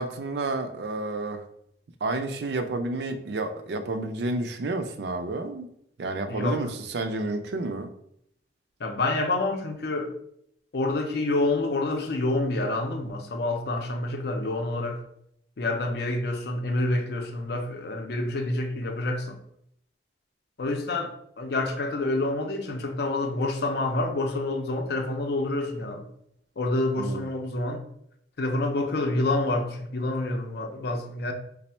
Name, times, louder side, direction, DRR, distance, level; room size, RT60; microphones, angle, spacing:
voice 1, 0.0-1.4 2.0-5.7 6.0-7.9 27.0-27.2, right 2 dB, 65° right, 0.4 m, -30 dB
voice 2, 6.3-6.7 8.8-10.1 10.7-15.0 15.6-19.4 20.6-26.1 26.6-27.8 28.4-31.3, left 2 dB, 60° left, 0.5 m, -28 dB
3.4 x 2.0 x 4.2 m
head